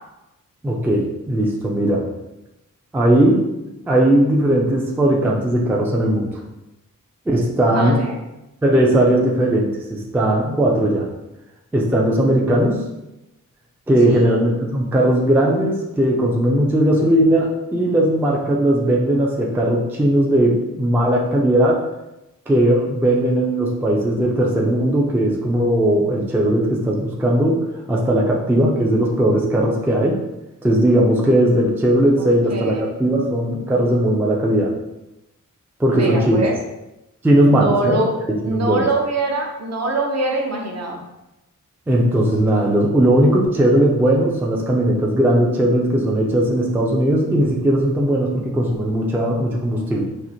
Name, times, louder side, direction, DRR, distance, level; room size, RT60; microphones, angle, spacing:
voice 1, 0.6-2.0 2.9-6.4 7.3-8.0 8.6-11.1 11.7-12.8 13.9-21.8 22.5-30.2 30.6-34.7 35.8-36.5 37.2-38.0 38.4-38.9 41.9-50.1, right 1 dB, 5° right, -2 dB, 0.3 m, -18 dB
voice 2, 7.7-8.1 14.1-14.4 32.2-32.9 35.9-36.5 37.4-38.1 38.4-41.0, right 2 dB, 55° right, 0 dB, 0.6 m, -23 dB
4.3 x 2.4 x 2.6 m, 0.95 s
wide cardioid pair, 165°, 33 cm